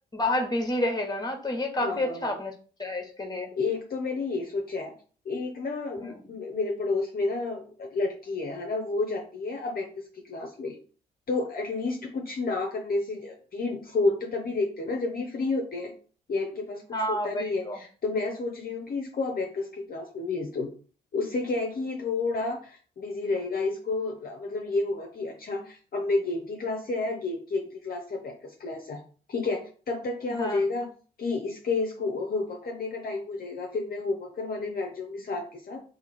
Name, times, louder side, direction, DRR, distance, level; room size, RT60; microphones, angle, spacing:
voice 1, 0.1-2.5 2.8-3.5 6.0-6.1 16.9-17.8 30.4-30.6, left 1 dB, 20° left, 4 dB, 1.2 m, -29 dB
voice 2, 1.8-2.4 3.6-4.9 5.2-9.9 10.1-10.8 11.3-15.9 16.3-20.7 21.1-29.0 29.3-30.9 31.2-35.8, left 3 dB, 45° left, 2 dB, 0.8 m, -30 dB
2.9 x 2.8 x 4.1 m, 0.40 s
supercardioid pair, 50°, 21 cm